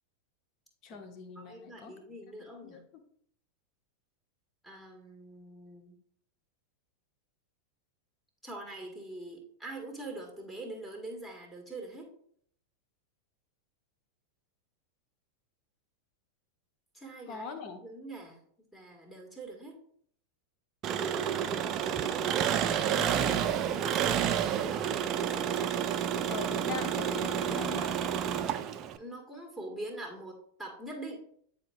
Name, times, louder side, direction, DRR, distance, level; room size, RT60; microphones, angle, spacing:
voice 1, 0.8-1.9 2.6-2.8 17.3-17.8 22.4-22.6 22.9-23.5 26.3-28.1, left 5 dB, 40° left, 7 dB, 0.9 m, -41 dB
voice 2, 1.3-2.8 4.6-6.0 8.4-12.1 16.9-19.8 29.0-31.2, right 2 dB, 5° left, 0 dB, 1.7 m, -44 dB
Engine, 20.8-29.0, right 9 dB, 35° right, 0.4 m, -30 dB
9.3 x 4.4 x 2.4 m, 0.63 s
figure-of-eight pair, 90°, 0 cm